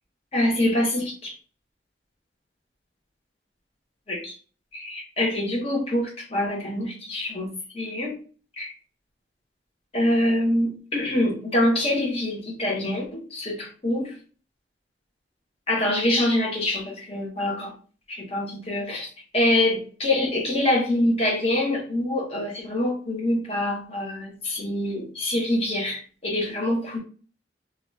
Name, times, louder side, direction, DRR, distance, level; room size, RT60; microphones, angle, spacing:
voice 1, 0.3-1.4 4.1-4.4 4.7-8.2 8.6-8.7 9.9-14.2 15.7-17.7 18.1-19.1 19.3-27.0, left 1 dB, 35° left, -2 dB, 1.1 m, -25 dB
3.0 x 2.5 x 3.2 m, 0.39 s
head